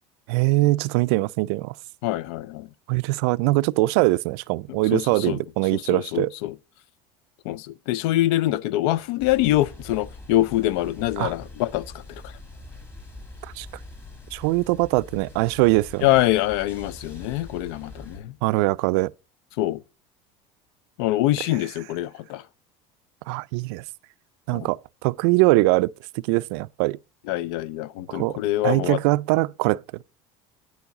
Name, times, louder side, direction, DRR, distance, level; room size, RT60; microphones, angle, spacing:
voice 1, 0.3-1.7 2.9-6.3 11.2-11.3 13.6-13.7 14.3-16.1 18.4-19.1 23.3-23.8 24.5-25.9 26.3-27.0 28.1-28.4 28.6-30.0, right 21 dB, 75° right, 0.4 m, -22 dB
voice 2, 2.0-2.7 4.9-5.4 5.7-6.5 7.5-11.9 16.0-18.3 19.6-19.8 21.0-22.4 24.5-24.7 27.3-29.0, left 15 dB, 80° left, 0.4 m, -24 dB
sound 1, 9.2-18.2, left 2 dB, 15° left, 1.5 m, -43 dB
9.5 x 7.1 x 3.9 m
cardioid pair, 170°, 13 cm